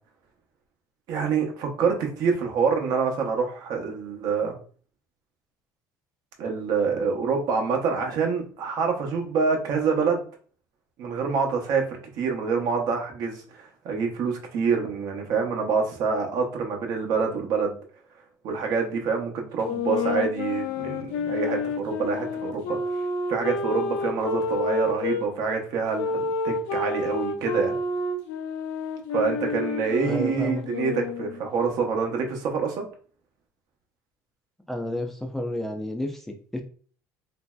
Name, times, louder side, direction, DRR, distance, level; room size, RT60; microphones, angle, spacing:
voice 1, 1.1-4.5 6.4-10.2 11.0-17.7 18.4-22.8 23.3-27.7 29.1-32.9, right 5 dB, 65° right, 2 dB, 0.7 m, -26 dB
sound 1, 19.6-25.2 25.9-31.5, left 3 dB, 85° left, 0.5 m, -29 dB
voice 2, 30.0-30.6 34.7-36.6, left 1 dB, 5° left, 3 dB, 0.3 m, -31 dB
3.0 x 2.6 x 2.2 m, 0.42 s
cardioid pair, 140°, 7 cm